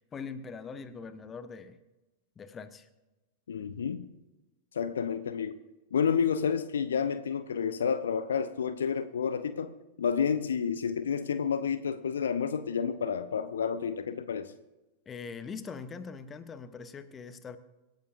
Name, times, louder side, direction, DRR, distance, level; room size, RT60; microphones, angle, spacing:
voice 1, 0.0-1.8 2.4-2.9 15.1-17.6, left 5 dB, 20° left, 12 dB, 1.1 m, -42 dB
voice 2, 3.5-4.1 4.7-5.6 5.9-9.7 10.0-14.5, left 7 dB, 65° left, 13 dB, 0.8 m, -30 dB
25.0 x 13.0 x 2.6 m, 1.0 s
figure-of-eight pair, 90°, 0 cm